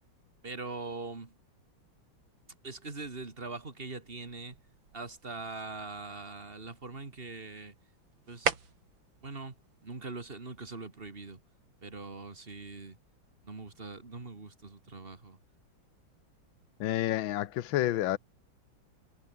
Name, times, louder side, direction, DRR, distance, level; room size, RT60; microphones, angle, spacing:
voice 1, 0.4-1.3 2.6-4.6 4.9-7.7 8.3-8.6 9.2-9.5 9.8-11.4 11.8-13.0 13.4-15.4, right 3 dB, 30° right, 2.7 m, -42 dB
sound 1, 2.9-10.8, right 6 dB, 75° right, 3.2 m, -42 dB
voice 2, 16.8-18.2, left 13 dB, 75° left, 1.6 m, -29 dB
omnidirectional pair, 2.2 m